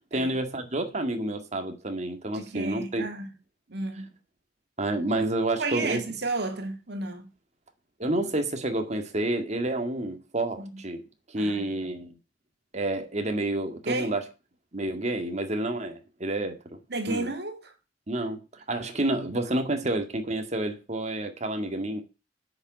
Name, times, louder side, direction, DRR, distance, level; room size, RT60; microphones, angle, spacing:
voice 1, 0.1-3.0 4.8-6.0 8.0-11.0 11.3-12.1 12.7-14.3 14.7-16.8 17.1-17.3 18.1-22.0, right 1 dB, 40° right, 2.0 m, -29 dB
voice 2, 2.3-3.3 3.7-4.1 5.6-7.3 10.6-10.8 11.4-11.7 13.9-14.1 16.9-17.7, right 3 dB, 65° right, 2.0 m, -32 dB
10.0 x 6.9 x 8.1 m
head